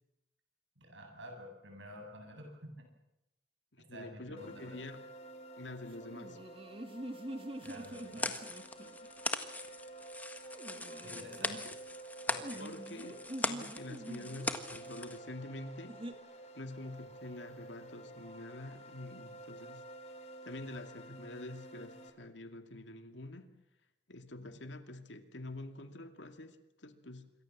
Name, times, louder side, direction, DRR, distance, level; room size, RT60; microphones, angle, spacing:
voice 1, 0.8-2.9 3.9-4.8 7.6-8.5 11.0-11.6 12.3-12.6 24.4-24.6, equal, 80° right, 4 dB, 8.0 m, -50 dB
voice 2, 3.7-5.0 5.6-6.4 11.1-11.2 11.6-11.7 12.6-16.0 16.6-19.9 20.4-23.5 24.1-27.3, left 2 dB, 75° left, 8 dB, 2.4 m, -47 dB
sound 1, 4.4-22.1, right 2 dB, 35° left, 3.5 m, -51 dB
sound 2, 6.0-9.1 10.5-11.6 12.4-14.5 15.9-16.1, right 1 dB, 30° right, 2.0 m, -45 dB
sound 3, 7.6-15.2, left 2 dB, 10° left, 1.5 m, -40 dB
27.0 x 23.5 x 7.4 m, 0.88 s
head